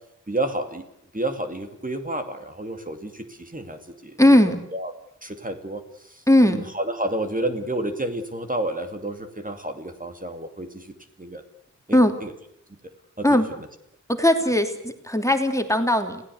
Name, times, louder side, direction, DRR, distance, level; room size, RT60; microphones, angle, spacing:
voice 1, 0.3-0.9 1.1-4.4 4.7-4.9 5.2-11.4 11.9-12.3 13.2-13.7, right 1 dB, 25° right, 6 dB, 2.5 m, -30 dB
voice 2, 4.2-4.6 6.3-6.6 11.9-12.1 13.2-13.5 14.1-16.2, left 1 dB, 10° left, 6 dB, 2.9 m, -18 dB
28.0 x 17.0 x 8.1 m, 0.76 s
wide cardioid pair, 60°, 30 cm